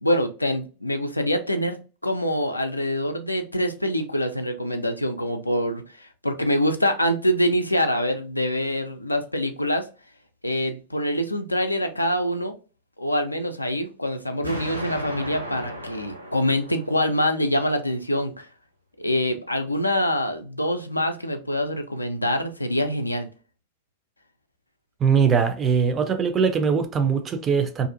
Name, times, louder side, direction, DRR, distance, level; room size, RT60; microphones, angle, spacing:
voice 1, 0.0-9.9 10.4-12.6 13.0-18.5 19.0-23.3, equal, 85° left, 0.3 m, -25 dB
Explosion, 14.4-17.4, equal, 85° right, 0.5 m, -35 dB
voice 2, 25.0-27.9, right 6 dB, 25° right, 0.4 m, -21 dB
2.5 x 2.4 x 2.5 m
figure-of-eight pair, 90°, 0 cm